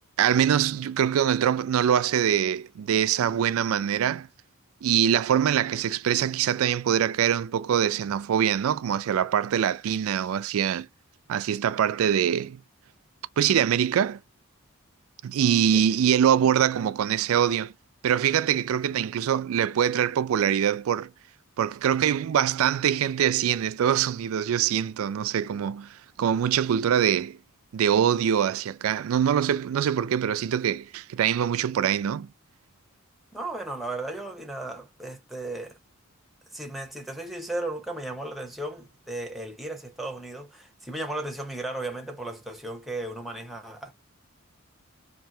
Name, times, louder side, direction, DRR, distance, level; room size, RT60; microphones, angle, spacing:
voice 1, 0.2-4.3 4.8-10.9 11.3-12.6 13.4-14.2 15.2-17.7 18.0-21.1 21.6-27.4 27.7-32.3, right 9 dB, 75° right, 0.3 m, -24 dB
voice 2, 15.7-16.1 33.3-35.8 36.5-43.9, right 2 dB, ahead, 0.8 m, -35 dB
4.4 x 2.7 x 2.7 m
head